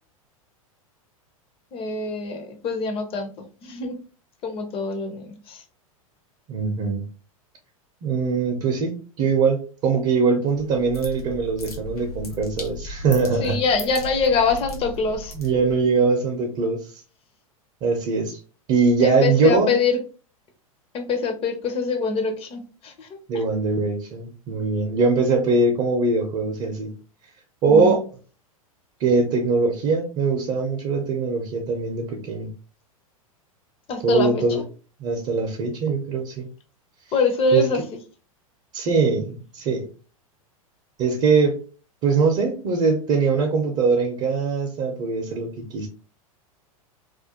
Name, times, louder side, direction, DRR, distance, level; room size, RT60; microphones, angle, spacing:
voice 1, 1.7-3.3 3.6-4.0 4.4-5.6 13.4-15.3 19.0-20.0 20.9-23.4 27.6-28.0 33.9-34.4 37.1-37.8, left 4 dB, 30° left, 6 dB, 0.7 m, -24 dB
voice 2, 6.5-7.0 8.0-13.6 15.3-17.0 17.8-18.4 18.7-19.7 23.3-26.9 27.6-28.1 29.0-32.5 34.0-34.6 35.0-36.5 37.5-37.6 38.7-39.9 41.0-41.6 42.0-45.9, right 4 dB, 40° right, 2 dB, 0.6 m, -22 dB
sound 1, 10.5-15.9, left 2 dB, 90° left, 0.9 m, -37 dB
2.4 x 2.2 x 2.8 m, 0.36 s
hypercardioid pair, 100°, 18 cm